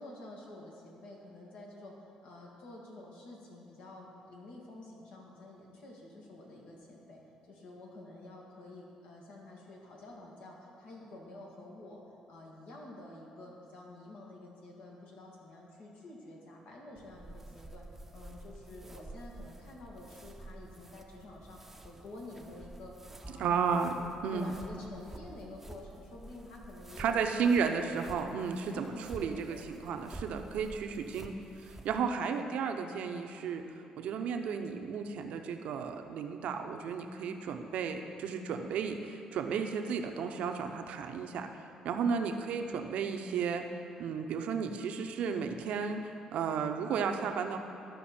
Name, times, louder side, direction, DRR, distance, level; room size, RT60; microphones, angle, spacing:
voice 1, 0.0-12.0 12.3-17.8 18.1-23.6 24.0-27.7 28.7-29.7 32.2-32.5 42.3-42.5, left 2 dB, 80° left, -2 dB, 1.8 m, -49 dB
sound 1, 17.0-32.0, right 2 dB, 10° right, 0.6 m, -50 dB
voice 2, 23.4-24.5 27.0-33.6 34.0-41.5 41.8-43.6 44.0-47.6, right 6 dB, 75° right, 5 dB, 0.7 m, -33 dB
13.0 x 5.4 x 4.3 m, 2.8 s
cardioid pair, 95°, 2 cm